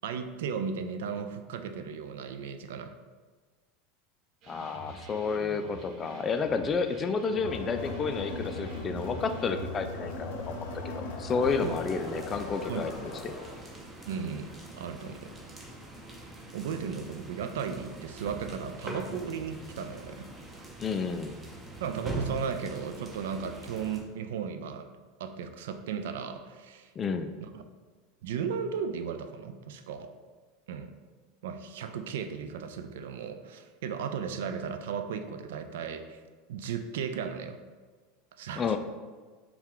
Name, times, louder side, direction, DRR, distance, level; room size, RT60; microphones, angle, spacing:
voice 1, 0.0-2.9 11.6-11.9 12.7-12.9 14.1-15.3 16.5-20.3 21.8-24.9 25.2-26.9 27.4-27.6 28.2-30.1 30.7-30.9 31.4-36.2 36.5-37.6 38.3-38.8, right 6 dB, 80° right, 8 dB, 0.3 m, -35 dB
sound 1, 4.4-9.7, right 3 dB, 50° right, 0.8 m, -47 dB
voice 2, 4.5-13.1 20.8-21.3 27.0-27.3 38.6-38.8, left 5 dB, 30° left, 8 dB, 0.3 m, -31 dB
Crowd, 7.3-13.6, left 3 dB, 75° left, 0.6 m, -39 dB
sound 2, 11.4-24.0, right 2 dB, 15° right, 0.7 m, -43 dB
4.2 x 2.3 x 3.8 m, 1.4 s
supercardioid pair, 115°, 0 cm